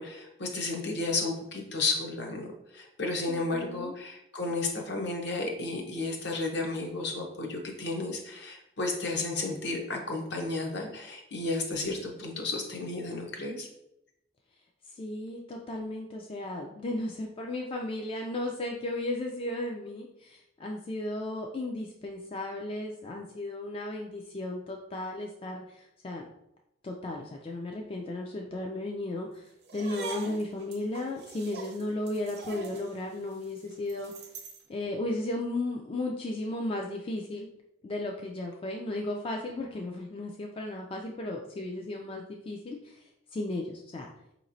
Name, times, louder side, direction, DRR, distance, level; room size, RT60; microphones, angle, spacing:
voice 1, 0.0-13.7, left 3 dB, 60° left, 1 dB, 0.8 m, -33 dB
voice 2, 3.3-3.9 14.9-26.3 26.8-34.1 34.7-37.5 37.8-44.1, left 2 dB, 30° left, 1 dB, 0.3 m, -35 dB
sound 1, 29.6-34.7, right 3 dB, 55° right, 0.6 m, -43 dB
4.8 x 3.0 x 2.6 m, 0.81 s
head